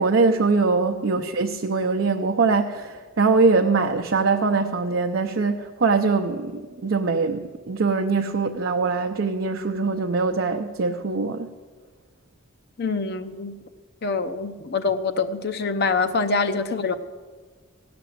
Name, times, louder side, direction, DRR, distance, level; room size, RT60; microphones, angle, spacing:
voice 1, 0.0-11.5, right 4 dB, 65° right, 3 dB, 0.6 m, -22 dB
voice 2, 12.8-13.5 14.0-17.0, left 4 dB, 55° left, 9 dB, 0.6 m, -25 dB
16.0 x 6.1 x 7.7 m, 1.4 s
head